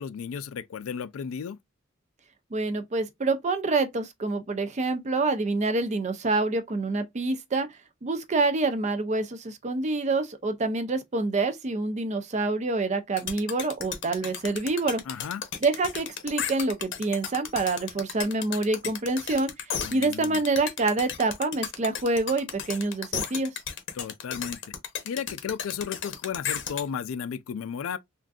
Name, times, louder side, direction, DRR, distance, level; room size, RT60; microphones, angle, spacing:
voice 1, 0.0-1.6 15.1-15.4 19.8-20.4 23.9-24.6 25.0-28.0, left 7 dB, 90° left, 0.4 m, -34 dB
voice 2, 2.5-7.7 8.0-15.0 15.6-19.5 19.9-23.5, right 3 dB, 35° right, 0.5 m, -27 dB
sound 1, 13.2-26.8, left 8 dB, 60° left, 0.7 m, -33 dB
3.7 x 2.6 x 2.3 m
head